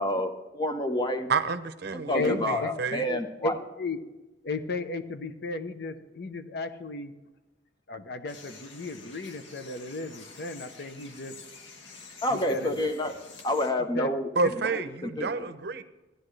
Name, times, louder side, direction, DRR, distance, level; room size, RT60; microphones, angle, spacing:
voice 1, 0.0-1.3 1.9-3.6 12.2-13.1 13.4-14.3 14.7-15.5, left 1 dB, 25° left, 6 dB, 1.0 m, -29 dB
voice 2, 1.3-3.1 14.4-15.8, right 4 dB, 60° right, 11 dB, 0.7 m, -29 dB
voice 3, 2.1-4.0 4.4-7.1 7.9-11.3 12.3-12.7 13.8-14.1 14.4-14.5, left 3 dB, 60° left, 8 dB, 0.8 m, -34 dB
sound 1, 8.3-13.7, left 4 dB, 85° left, 1.3 m, -48 dB
15.0 x 10.5 x 3.3 m, 1.1 s
head